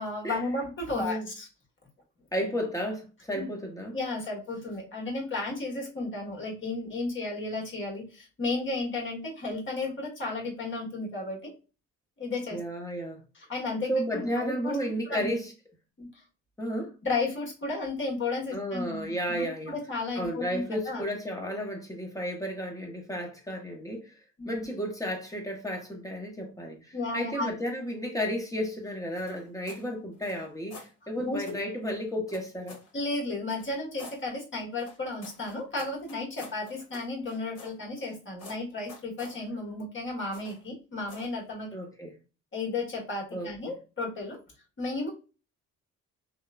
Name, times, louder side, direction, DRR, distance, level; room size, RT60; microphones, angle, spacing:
voice 1, 0.0-1.5 3.3-3.5 3.9-11.5 12.2-12.6 13.3-14.8 15.1-15.3 16.0-16.1 17.0-21.0 24.4-24.6 26.9-27.5 31.2-31.6 32.9-41.7 42.5-44.4 44.8-45.1, left 2 dB, 40° left, 1.4 m, -33 dB
voice 2, 0.9-1.3 2.3-3.9 12.5-13.2 13.9-15.5 16.6-16.9 18.5-19.7 20.2-24.2 24.4-32.8 41.7-42.1 43.3-43.5, equal, 10° left, 0.8 m, -33 dB
sound 1, 29.2-29.9 30.2-30.9 31.4-31.6 32.3-32.9 33.5-34.2 34.8-38.1 38.4-39.4 40.3-40.7 41.1-41.4, left 3 dB, 55° left, 1.2 m, -49 dB
2.9 x 2.1 x 2.4 m
cardioid pair, 90°, 30 cm